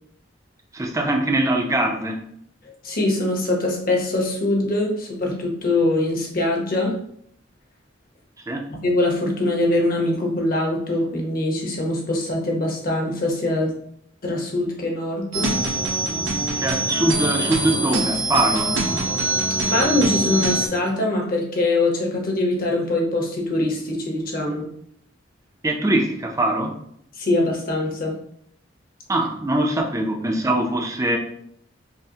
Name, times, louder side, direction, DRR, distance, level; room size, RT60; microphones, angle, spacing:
voice 1, 0.7-2.2 8.5-8.7 16.6-18.8 25.6-26.8 29.1-31.2, right 1 dB, 15° right, 1 dB, 0.5 m, -22 dB
voice 2, 2.6-7.0 8.7-13.7 14.2-15.5 16.4-16.7 19.2-19.3 19.6-24.7 27.1-28.2, left 2 dB, 50° left, -1 dB, 0.9 m, -23 dB
sound 1, 15.3-20.7, right 2 dB, 75° right, 0.7 m, -24 dB
5.4 x 2.1 x 2.8 m, 0.70 s
head